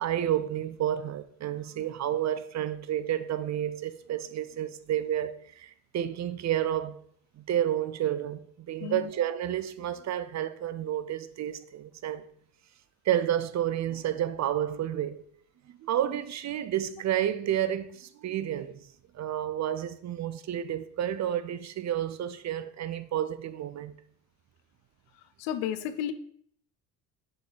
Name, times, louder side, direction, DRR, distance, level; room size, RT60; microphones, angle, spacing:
voice 1, 0.0-7.0 7.4-12.2 13.1-15.2 15.8-18.8 19.1-23.9, right 11 dB, 45° right, 0.5 m, -30 dB
voice 2, 25.4-26.1, left 10 dB, 85° left, 0.6 m, -32 dB
6.7 x 3.8 x 4.0 m
supercardioid pair, 70°, 41 cm